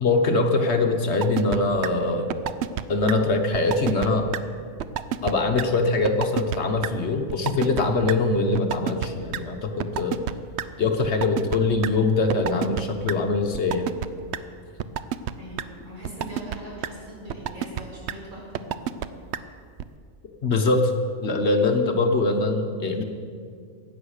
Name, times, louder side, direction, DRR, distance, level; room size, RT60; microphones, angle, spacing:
voice 1, 0.0-2.3 2.9-4.3 5.2-10.2 10.8-13.9 20.4-20.9 21.2-23.0, left 3 dB, 55° left, 5 dB, 1.3 m, -23 dB
sound 1, 1.2-1.6 1.8-1.9 2.3-2.8 3.1-3.2 3.5-4.1 4.3-4.4 4.8-5.3 5.6-5.7 6.0-6.6 6.8-6.9 7.3-7.8 8.1-8.2 8.5-9.4 9.8-10.6 11.0-11.9 12.3-12.8 13.1-13.2 13.5-14.1 14.3-14.4 14.8-15.3 15.6-15.7 16.0-16.6 16.8-16.9 17.3-17.8 18.1-18.2 18.5-19.1 19.3-19.4 19.8-19.9, right 10 dB, 65° right, 0.8 m, -27 dB
voice 2, 15.4-19.0, right 1 dB, 80° right, -4 dB, 5.2 m, -41 dB
15.5 x 9.4 x 6.5 m, 2.2 s
omnidirectional pair, 1.4 m